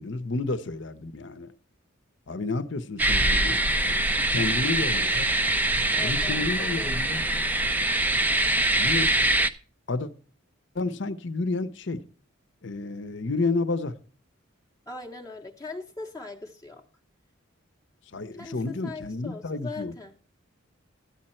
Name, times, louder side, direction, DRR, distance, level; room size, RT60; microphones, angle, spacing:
voice 1, 0.0-1.5 2.3-3.6 4.3-5.3 6.0-7.2 8.7-9.1 9.9-10.1 10.7-12.0 12.6-14.0 18.1-19.9, left 3 dB, 55° left, 0.8 m, -30 dB
sound 1, 3.0-9.5, right 2 dB, 10° right, 0.4 m, -24 dB
voice 2, 5.9-7.0 14.9-16.8 18.3-20.1, left 3 dB, 15° left, 0.8 m, -40 dB
13.0 x 8.8 x 4.3 m
head